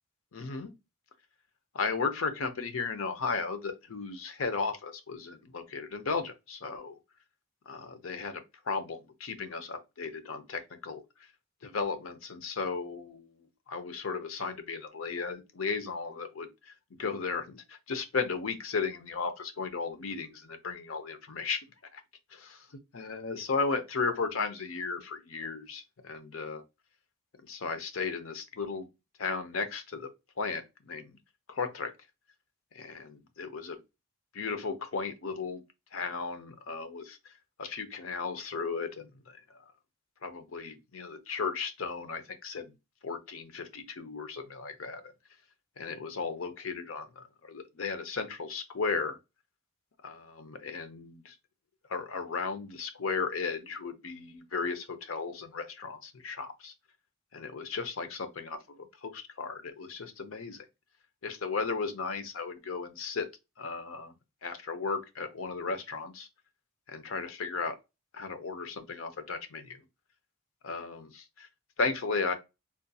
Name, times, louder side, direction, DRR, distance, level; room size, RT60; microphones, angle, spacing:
voice 1, 0.3-0.7 1.7-7.0 7.7-11.0 11.6-13.3 13.7-16.5 17.0-21.6 21.9-22.0 22.3-22.6 22.9-26.6 27.4-28.9 29.2-30.1 30.4-31.2 31.5-31.9 32.7-33.8 34.3-35.6 35.9-37.2 37.6-39.1 40.2-42.7 43.0-45.1 45.8-49.2 50.0-51.3 51.9-56.7 57.3-60.6 61.2-63.3 63.6-64.1 64.4-66.3 66.9-67.8 68.1-69.8 70.6-71.5 71.8-72.3, left 4 dB, 90° left, 0.6 m, -35 dB
3.7 x 2.2 x 2.7 m
head